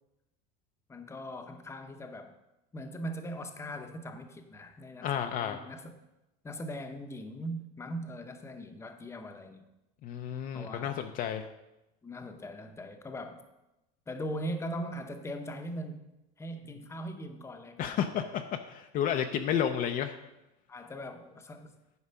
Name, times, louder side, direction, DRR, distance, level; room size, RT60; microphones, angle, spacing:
voice 1, 0.9-2.3 2.7-5.1 5.4-5.9 6.4-9.6 10.5-11.0 12.0-13.4 14.1-16.0 16.4-18.4 20.7-21.7, equal, 15° left, 6 dB, 0.8 m, -40 dB
voice 2, 5.0-5.6 10.0-11.5 17.8-20.1, left 9 dB, 45° left, 6 dB, 0.6 m, -31 dB
9.6 x 4.9 x 5.6 m, 0.95 s
supercardioid pair, 130°, 20 cm